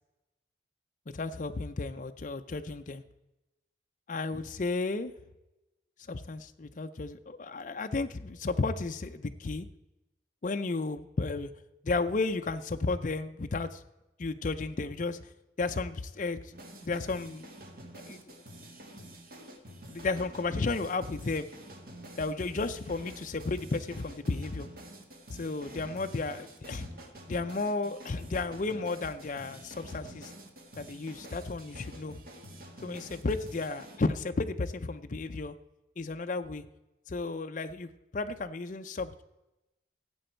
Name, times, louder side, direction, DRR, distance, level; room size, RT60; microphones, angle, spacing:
voice 1, 1.1-3.0 4.1-5.1 6.1-9.7 10.4-11.5 11.8-13.8 14.2-15.3 15.6-17.5 18.1-18.3 19.9-21.5 22.2-24.7 25.3-26.9 27.3-30.3 30.8-32.2 32.8-35.5 36.0-36.6 37.1-39.2, left 3 dB, 45° left, 6 dB, 0.5 m, -33 dB
sound 1, 16.5-34.0, right 1 dB, 50° right, 1.7 m, -49 dB
17.0 x 7.8 x 4.4 m, 0.98 s
head